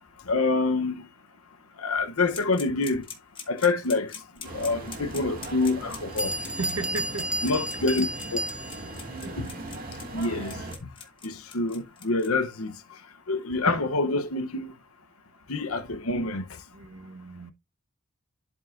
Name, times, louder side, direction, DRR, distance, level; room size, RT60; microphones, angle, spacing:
voice 1, 0.3-1.0 1.8-3.0 3.5-4.1 4.5-6.3 7.4-8.1 8.3-8.4 9.4-9.5 10.1-10.6 11.2-12.8 13.3-14.7 15.5-16.4, left 3 dB, 90° left, 1.1 m, -26 dB
sound 1, 2.3-12.3, left 6 dB, 25° left, 1.9 m, -42 dB
sound 2, 4.4-10.8, right 2 dB, 40° right, 2.4 m, -39 dB
Bell, 5.8-5.9 6.2-9.0, right 1 dB, 5° right, 0.4 m, -32 dB
voice 2, 6.4-7.4 9.2-9.4 9.7-9.8 16.7-17.5, right 3 dB, 90° right, 1.4 m, -36 dB
11.5 x 5.5 x 2.7 m
head